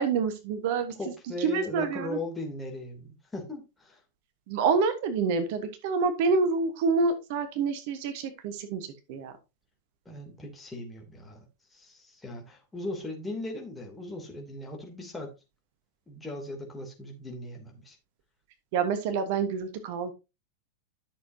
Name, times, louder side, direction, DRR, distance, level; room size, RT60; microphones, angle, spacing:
voice 1, 0.0-0.9 1.4-2.2 4.5-9.3 18.7-20.1, right 4 dB, 50° right, 1.2 m, -27 dB
voice 2, 1.0-4.0 10.0-11.5 11.7-15.3 16.1-18.0, left 2 dB, 10° left, 2.9 m, -38 dB
11.5 x 6.8 x 2.8 m
figure-of-eight pair, 90°, 0 cm